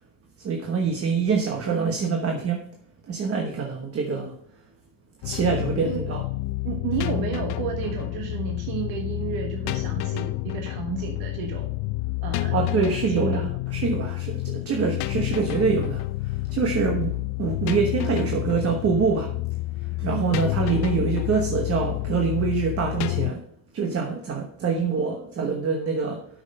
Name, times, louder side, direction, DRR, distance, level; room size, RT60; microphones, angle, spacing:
voice 1, 0.4-2.7 3.1-4.3 5.2-6.2 12.5-19.4 19.8-23.4 23.7-26.3, right 5 dB, 30° right, 1.1 m, -25 dB
sound 1, 5.2-23.3, left 20 dB, 60° left, 0.6 m, -29 dB
voice 2, 5.8-6.2 6.6-11.7 12.2-12.5 13.1-13.5 20.0-20.4 24.6-24.7, right 6 dB, 55° right, 1.4 m, -32 dB
8.6 x 6.4 x 5.4 m
cardioid pair, 155°, 45 cm